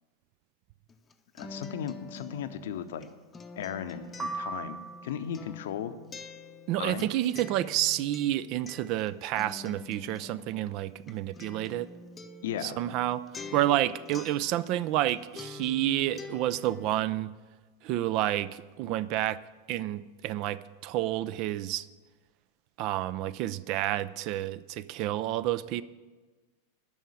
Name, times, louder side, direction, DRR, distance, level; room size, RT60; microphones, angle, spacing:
Acoustic guitar, 0.9-15.1 15.4-16.9, left 4 dB, 20° left, 0.7 m, -46 dB
voice 1, 1.4-3.1 3.6-5.9 6.8-7.1 12.4-12.8, left 9 dB, 55° left, 11 dB, 0.7 m, -36 dB
sound 1, 4.2-5.5, right 3 dB, 15° right, 1.2 m, -38 dB
voice 2, 6.7-11.9 12.6-13.3 13.5-17.3 17.8-19.4 19.7-21.9 22.8-25.8, right 14 dB, 40° right, 18 dB, 0.3 m, -29 dB
11.0 x 6.4 x 8.4 m, 1.3 s
figure-of-eight pair, 90°, 0 cm